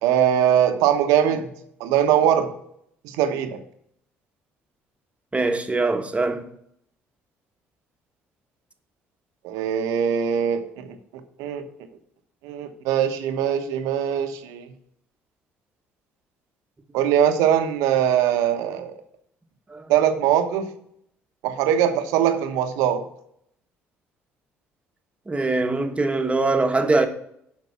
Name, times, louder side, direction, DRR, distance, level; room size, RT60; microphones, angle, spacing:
voice 1, 0.0-1.5 1.8-2.5 3.0-3.6 9.4-11.0 11.4-11.7 12.4-14.6 16.9-18.9 19.9-20.7 21.4-23.1, right 9 dB, 80° right, 1.0 m, -21 dB
voice 2, 5.3-6.4 19.7-19.9 25.3-27.1, right 3 dB, 20° right, 1.3 m, -22 dB
7.4 x 5.2 x 6.9 m
hypercardioid pair, 60°, 6 cm